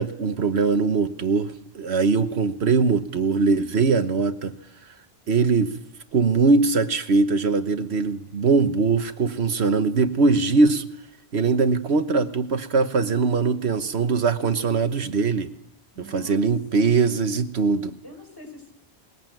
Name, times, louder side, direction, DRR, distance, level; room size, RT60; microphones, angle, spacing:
voice 1, 0.0-4.6 5.3-5.7 6.1-10.9 11.3-15.5 16.0-17.9, right 4 dB, 80° right, 1.4 m, -21 dB
voice 2, 15.9-16.5 16.8-16.9 18.0-18.7, equal, 20° left, 5.8 m, -44 dB
20.5 x 20.5 x 9.1 m
omnidirectional pair, 1.1 m